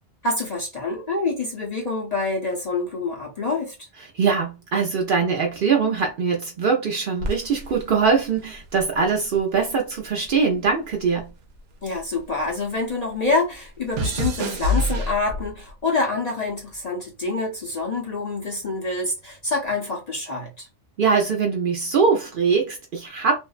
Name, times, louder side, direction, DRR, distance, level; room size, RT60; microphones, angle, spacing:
voice 1, 0.2-3.7 11.8-20.7, left 3 dB, 45° left, 0.6 m, -26 dB
voice 2, 4.1-11.3 21.0-23.4, right 5 dB, 60° right, 0.6 m, -22 dB
sound 1, 7.2-9.7 10.0-12.6 12.9-15.7 16.5-16.8, left 1 dB, 80° right, 0.9 m, -29 dB
2.5 x 2.1 x 2.3 m
omnidirectional pair, 1.2 m